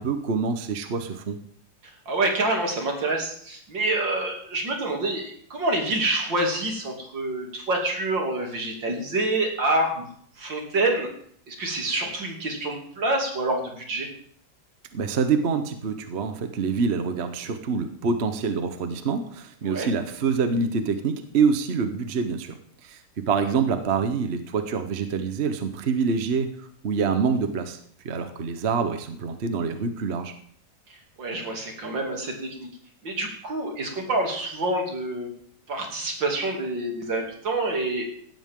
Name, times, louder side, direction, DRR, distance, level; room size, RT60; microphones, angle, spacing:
voice 1, 0.0-1.4 14.9-22.5 22.8-26.5 26.8-27.8 28.0-30.3, right 5 dB, 45° right, 8 dB, 1.0 m, -26 dB
voice 2, 1.8-10.1 10.4-11.1 11.5-14.1 19.6-19.9 30.9-32.7 33.0-35.3 35.7-38.1, right 2 dB, 70° right, 1 dB, 3.5 m, -27 dB
17.0 x 13.0 x 3.7 m, 0.62 s
omnidirectional pair, 2.1 m